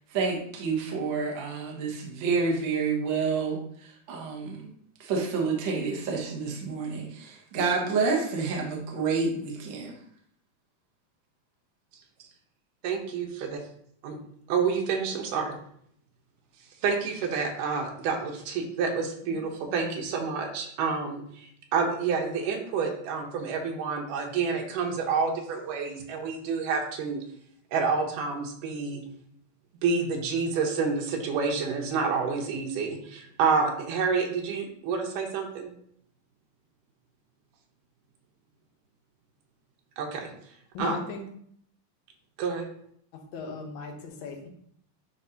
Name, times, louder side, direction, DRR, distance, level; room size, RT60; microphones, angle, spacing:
voice 1, 0.1-4.7 5.0-9.9, right 4 dB, 60° right, -1 dB, 1.2 m, -29 dB
voice 2, 12.8-13.6 14.0-14.2 14.5-15.5 16.8-27.2 27.7-29.0 29.8-35.7 40.0-40.3 40.8-41.0 42.4-42.7, right 5 dB, 85° right, 1 dB, 2.6 m, -28 dB
voice 3, 19.2-19.8 40.7-41.2 43.3-44.5, left 3 dB, 70° left, 2 dB, 2.2 m, -38 dB
9.9 x 4.1 x 2.8 m, 0.66 s
omnidirectional pair, 3.6 m